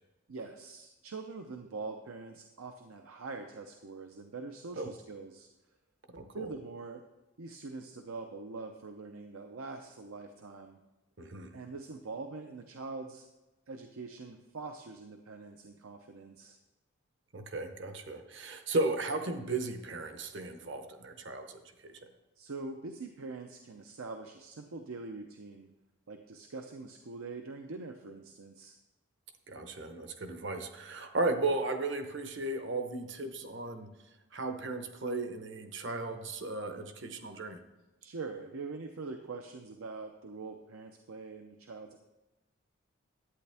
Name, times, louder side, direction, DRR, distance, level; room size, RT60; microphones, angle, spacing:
voice 1, 0.3-5.5 6.3-7.0 7.4-10.8 11.5-13.3 13.7-16.6 22.4-25.7 26.1-28.8 38.0-42.0, right 3 dB, 80° right, 5 dB, 0.7 m, -43 dB
voice 2, 6.1-6.5 11.2-11.5 17.3-21.9 29.5-33.9 34.3-37.6, right 2 dB, 55° right, 7 dB, 0.9 m, -35 dB
11.0 x 8.9 x 3.5 m, 1.0 s
head